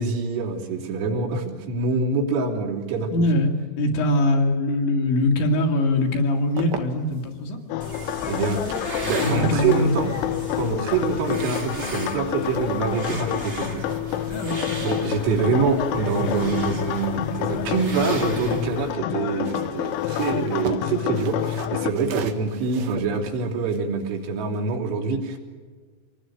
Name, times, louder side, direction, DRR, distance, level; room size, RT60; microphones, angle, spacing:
voice 1, 0.0-3.1 8.3-8.6 9.0-10.1 10.6-13.9 14.2-14.4 14.8-25.4, right 4 dB, 80° right, -2 dB, 5.9 m, -25 dB
voice 2, 3.1-7.6 9.2-10.1 14.3-14.6, left 1 dB, 65° left, 2 dB, 4.7 m, -22 dB
sound 1, 6.1-7.3 7.9-13.3 13.5-18.2 19.2-24.8, right 6 dB, 60° right, 2.5 m, -40 dB
sound 2, 7.7-21.9, left 13 dB, 90° left, 3.6 m, -28 dB
sound 3, 7.8-18.9, right 2 dB, 40° right, 0.8 m, -36 dB
26.5 x 20.0 x 9.2 m, 1.5 s
omnidirectional pair, 6.0 m